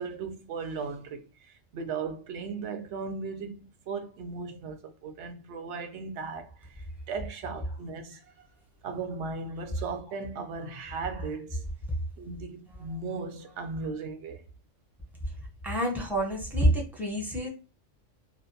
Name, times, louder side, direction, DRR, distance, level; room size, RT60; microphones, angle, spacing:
voice 1, 0.0-8.2 8.8-11.6 12.2-14.4, right 4 dB, 70° right, 0.8 m, -37 dB
voice 2, 15.6-17.5, right 1 dB, ahead, 0.5 m, -27 dB
2.5 x 2.1 x 2.6 m
omnidirectional pair, 1.3 m